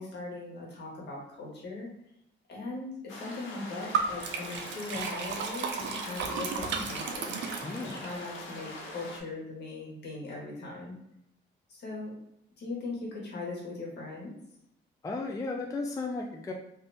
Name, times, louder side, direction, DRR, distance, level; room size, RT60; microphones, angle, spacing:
voice 1, 0.0-1.9 2.5-7.4 7.8-11.0 11.7-12.1 12.6-14.3, left 3 dB, 60° left, -3 dB, 1.4 m, -39 dB
sound 1, 3.1-9.2, left 2 dB, 85° left, 0.7 m, -43 dB
Liquid, 3.9-8.1, right 5 dB, 65° right, 0.5 m, -34 dB
voice 2, 7.6-8.1 15.0-16.5, left 3 dB, 15° left, 1 dB, 0.4 m, -35 dB
3.4 x 2.6 x 2.6 m, 0.79 s
cardioid pair, 90°, 20 cm